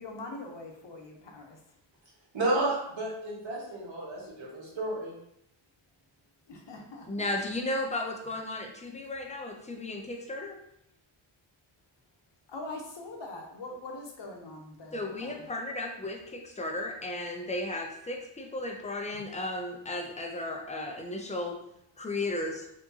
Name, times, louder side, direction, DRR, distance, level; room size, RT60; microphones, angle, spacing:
voice 1, 0.0-1.6 6.5-7.3 12.5-15.5, left 2 dB, 60° left, 1 dB, 0.8 m, -43 dB
voice 2, 2.3-5.1, right 2 dB, 65° right, -6 dB, 1.5 m, -31 dB
voice 3, 7.1-10.6 14.9-21.6 22.0-22.6, left 2 dB, 15° left, 2 dB, 0.4 m, -34 dB
4.6 x 2.9 x 2.7 m, 0.76 s
wide cardioid pair, 180°, 49 cm